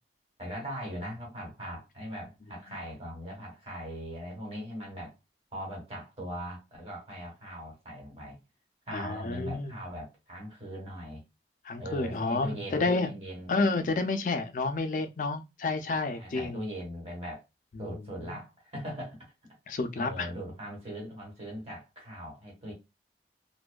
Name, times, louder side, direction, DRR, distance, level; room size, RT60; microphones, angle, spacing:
voice 1, 0.4-5.1 5.5-8.4 8.9-11.2 11.8-13.5 16.1-17.4 17.8-19.2 19.7-22.7, equal, 35° right, 1.2 m, -40 dB
voice 2, 8.9-9.7 11.7-13.1 13.5-16.6 18.3-18.4 19.7-20.3, left 3 dB, 45° left, 0.4 m, -30 dB
2.6 x 2.2 x 2.2 m
head